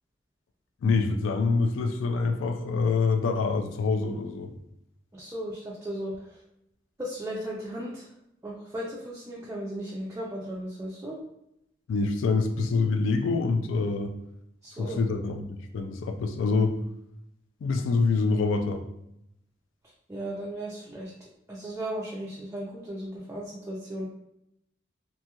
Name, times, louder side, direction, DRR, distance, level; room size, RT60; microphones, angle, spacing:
voice 1, 0.8-4.6 11.9-14.1 14.8-16.7 17.6-18.8, left 4 dB, 75° left, 6 dB, 0.3 m, -26 dB
voice 2, 5.1-6.4 7.0-8.1 8.4-11.2 14.6-15.0 20.1-21.1 21.5-24.1, right 1 dB, 15° right, -4 dB, 0.3 m, -36 dB
2.6 x 2.3 x 2.8 m, 0.81 s
head